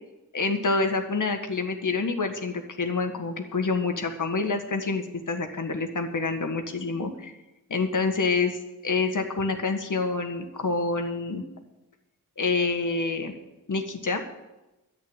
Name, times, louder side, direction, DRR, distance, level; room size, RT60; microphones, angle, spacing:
voice 1, 0.3-7.3 7.7-8.6 8.8-11.4 12.4-13.3 13.7-14.2, left 4 dB, 65° left, 6 dB, 1.7 m, -27 dB
11.0 x 8.1 x 9.0 m, 1.0 s
cardioid pair, 55°, 34 cm